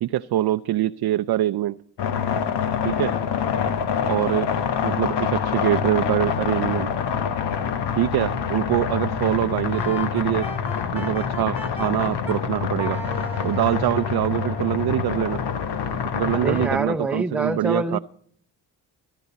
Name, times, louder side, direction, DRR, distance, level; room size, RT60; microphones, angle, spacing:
voice 1, 0.0-1.8 2.8-3.1 4.1-4.5 4.8-6.9 8.0-10.5 10.9-13.0 13.4-15.4 16.1-18.0, right 13 dB, 60° right, 10 dB, 0.5 m, -24 dB
sound 1, 2.0-16.8, left 7 dB, 75° left, 1.1 m, -26 dB
Wind instrument woodwind instrument, 9.7-12.4 12.8-15.2, left 2 dB, 15° left, 3.2 m, -36 dB
voice 2, 16.3-18.0, right 2 dB, 5° right, 7 dB, 0.6 m, -25 dB
22.5 x 10.0 x 4.1 m, 0.63 s
cardioid pair, 60°, 42 cm